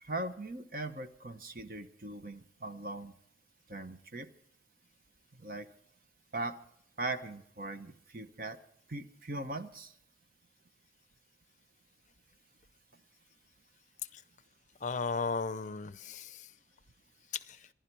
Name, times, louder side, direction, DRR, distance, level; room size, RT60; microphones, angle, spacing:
voice 1, 0.0-3.1 3.7-4.3 5.4-5.7 6.3-6.6 7.0-8.6 8.9-9.9, right 2 dB, 50° right, 9 dB, 1.0 m, -40 dB
voice 2, 14.8-16.5 17.3-17.7, left 4 dB, 40° left, 14 dB, 0.5 m, -36 dB
24.5 x 11.5 x 4.6 m, 0.73 s
head